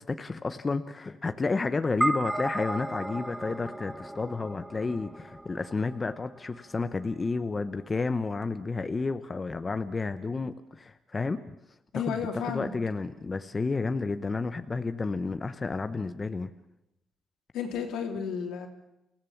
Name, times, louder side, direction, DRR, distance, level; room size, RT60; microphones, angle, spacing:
voice 1, 0.0-11.5 11.9-16.5, left 3 dB, 30° left, 10 dB, 0.9 m, -31 dB
sound 1, 2.0-6.6, right 1 dB, 5° right, 1.1 m, -34 dB
voice 2, 11.9-12.7 17.5-18.7, left 6 dB, 85° left, 3 dB, 3.2 m, -32 dB
29.0 x 16.5 x 7.3 m, 0.90 s
cardioid pair, 90°, 0 cm